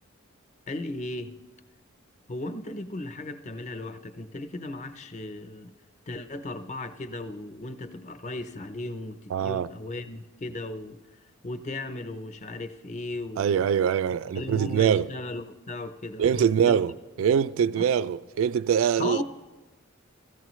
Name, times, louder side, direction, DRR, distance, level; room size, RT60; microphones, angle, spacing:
voice 1, 0.7-1.4 2.3-5.7 6.1-11.0 11.4-13.7 14.3-16.8 17.7-17.9 19.0-19.2, left 2 dB, 35° left, 0.6 m, -36 dB
voice 2, 9.3-9.7 13.4-15.1 16.2-16.9 17.2-19.2, right 8 dB, 70° right, 0.3 m, -23 dB
16.5 x 14.5 x 3.1 m
head